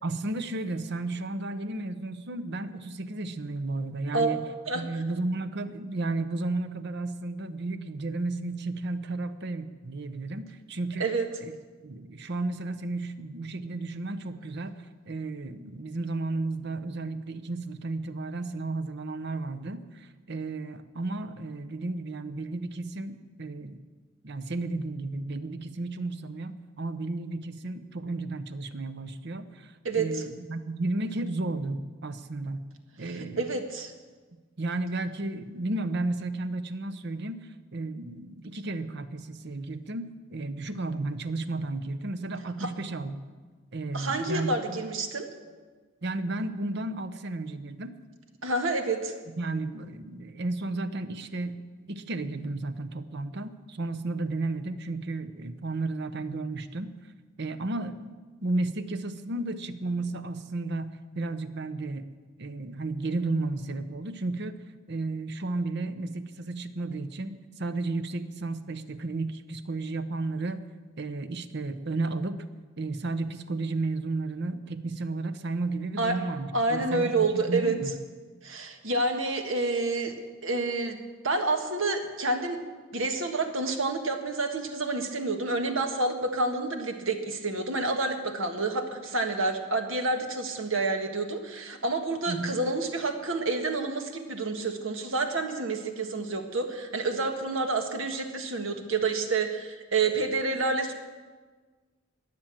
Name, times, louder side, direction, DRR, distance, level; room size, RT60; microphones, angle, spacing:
voice 1, 0.0-4.4 4.7-11.1 11.4-11.5 11.8-23.8 24.2-32.7 33.0-33.6 34.6-43.2 43.7-44.8 46.0-48.0 49.4-51.6 51.9-56.9 57.4-58.1 58.4-62.1 62.4-64.6 64.9-70.6 71.0-72.4 72.8-77.9 92.3-92.6, right 2 dB, 60° right, 11 dB, 0.9 m, -33 dB
voice 2, 29.8-30.2 33.1-33.9 42.6-42.7 43.9-45.3 48.4-49.1 76.0-76.1 76.5-77.7 78.4-80.1 80.4-81.0 81.2-82.6 82.9-100.9, right 3 dB, 80° right, 5 dB, 1.6 m, -28 dB
21.0 x 7.7 x 7.6 m, 1.4 s
head